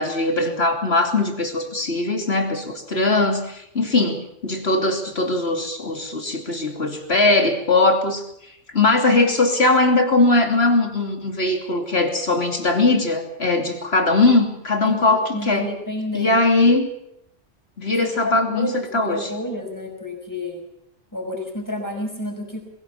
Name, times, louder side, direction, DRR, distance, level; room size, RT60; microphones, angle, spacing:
voice 1, 0.0-8.2 8.7-15.7 16.1-16.9 17.8-19.3, left 2 dB, 55° left, 4 dB, 3.2 m, -20 dB
voice 2, 14.8-16.4 17.9-20.6 21.1-22.6, left 1 dB, 15° left, 2 dB, 5.6 m, -30 dB
21.5 x 17.5 x 7.2 m, 0.75 s
omnidirectional pair, 1.3 m